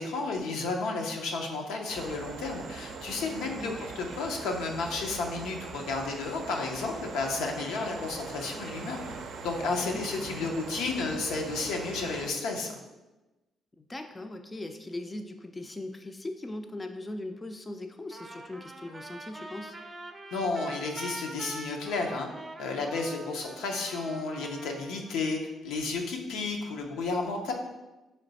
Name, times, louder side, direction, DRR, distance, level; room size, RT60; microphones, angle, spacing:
voice 1, 0.0-9.0 9.4-12.8 20.3-22.3 22.6-25.4 25.6-27.5, left 3 dB, 90° left, 2 dB, 0.6 m, -32 dB
sound 1, 1.9-12.3, right 4 dB, 70° right, 0.4 m, -41 dB
voice 2, 3.6-3.9 9.9-10.5 13.8-19.8, left 1 dB, 20° left, 6 dB, 0.3 m, -40 dB
Trumpet, 18.1-25.1, right 2 dB, 25° right, 0.6 m, -44 dB
3.9 x 3.2 x 4.0 m, 1.1 s
cardioid pair, 90°, 0 cm